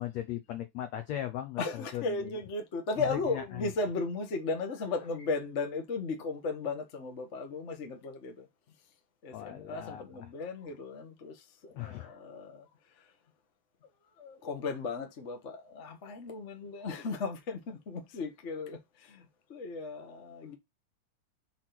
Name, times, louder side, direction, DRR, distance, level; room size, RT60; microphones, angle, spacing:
voice 1, 0.0-2.3 3.0-3.7 9.3-10.3 11.7-12.2, left 12 dB, 75° left, 1.5 m, -38 dB
voice 2, 1.6-8.5 9.2-12.7 13.0-13.1 14.2-20.6, left 3 dB, 45° left, 0.9 m, -36 dB
6.1 x 4.3 x 6.0 m
omnidirectional pair, 4.1 m